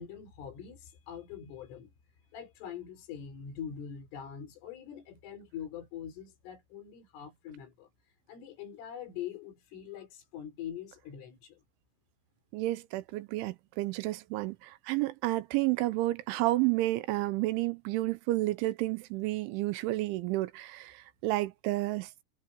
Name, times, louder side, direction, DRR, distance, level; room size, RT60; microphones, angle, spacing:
voice 1, 0.0-1.9 2.3-7.9 8.3-11.6, left 8 dB, 75° left, 7.2 m, -43 dB
voice 2, 12.5-22.1, right 18 dB, 80° right, 3.0 m, -31 dB
omnidirectional pair, 5.7 m